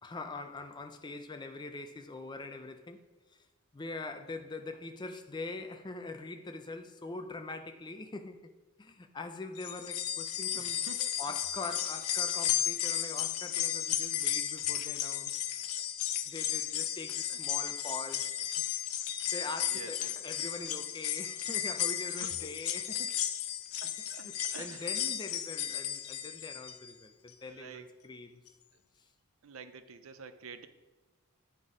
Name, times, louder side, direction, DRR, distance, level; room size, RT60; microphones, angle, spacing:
voice 1, 0.0-3.0 3.3-3.5 3.7-8.5 8.8-10.8 11.2-15.3 16.2-18.4 19.3-23.2 24.0-28.4 29.0-29.1, left 3 dB, 20° left, 0.4 m, -43 dB
sound 1, 9.6-26.9 27.3-27.4 28.5-28.6, left 10 dB, 80° left, 0.5 m, -34 dB
voice 2, 10.5-11.2 15.8-15.9 17.3-17.4 19.7-20.1 22.0-22.5 23.8-25.1 27.5-27.8 29.4-30.7, right 5 dB, 70° right, 0.5 m, -49 dB
9.1 x 4.1 x 4.9 m
head